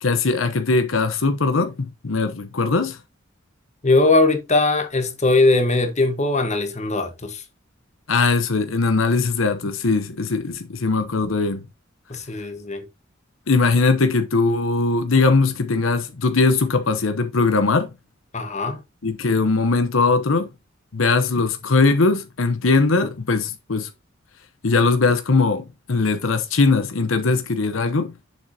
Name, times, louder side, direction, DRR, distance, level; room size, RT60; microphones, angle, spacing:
voice 1, 0.0-3.0 8.1-11.6 13.5-17.9 19.0-20.5 20.9-23.9 24.6-28.1, left 3 dB, 85° left, 0.9 m, -20 dB
voice 2, 3.8-7.4 12.1-12.8 18.3-18.8, left 2 dB, 35° left, 1.4 m, -20 dB
7.2 x 6.1 x 2.8 m
head